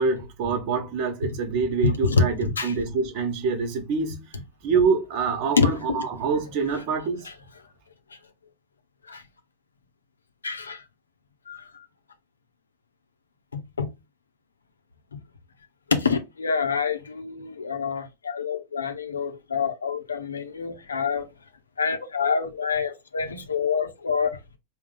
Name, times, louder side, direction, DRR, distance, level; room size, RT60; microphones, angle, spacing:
voice 1, 0.0-4.2 4.6-7.3, right 5 dB, 45° right, 1.0 m, -25 dB
voice 2, 1.8-2.8 5.6-6.1 7.2-7.3 9.1-9.2 10.4-10.8 11.5-11.8 13.5-13.9 15.1-15.2 15.9-21.3 21.8-24.3, left 5 dB, 75° left, 0.7 m, -26 dB
3.6 x 2.2 x 3.8 m
figure-of-eight pair, 90°, 0 cm